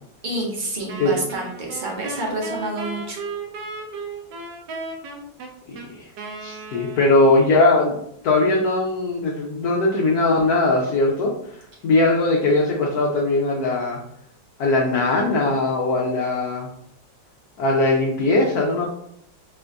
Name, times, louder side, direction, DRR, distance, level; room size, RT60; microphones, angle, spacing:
voice 1, 0.2-3.2, right 2 dB, 40° right, -1 dB, 0.7 m, -28 dB
Wind instrument woodwind instrument, 0.9-7.5, right 3 dB, 70° right, 1.4 m, -35 dB
voice 2, 5.7-6.1 6.4-7.9 8.2-14.0 14.6-16.7 17.6-18.9, left 2 dB, 65° left, -1 dB, 1.1 m, -20 dB
4.9 x 2.6 x 3.4 m, 0.71 s
omnidirectional pair, 2.0 m